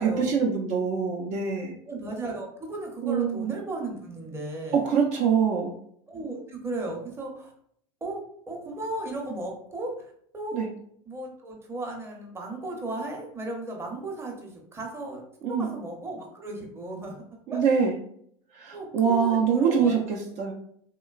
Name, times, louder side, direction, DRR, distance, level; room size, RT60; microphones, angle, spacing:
voice 1, 0.0-1.7 3.0-3.5 4.7-5.7 10.5-10.7 15.4-15.7 17.5-18.0 18.5-20.5, right 6 dB, 55° right, 0 dB, 0.5 m, -24 dB
voice 2, 1.9-4.8 6.1-7.5 8.0-9.9 10.3-10.7 11.1-17.2 17.5-17.6 18.7-20.0, right 2 dB, 15° right, 0 dB, 0.7 m, -35 dB
2.9 x 2.2 x 2.3 m, 0.65 s
hypercardioid pair, 95°, 15 cm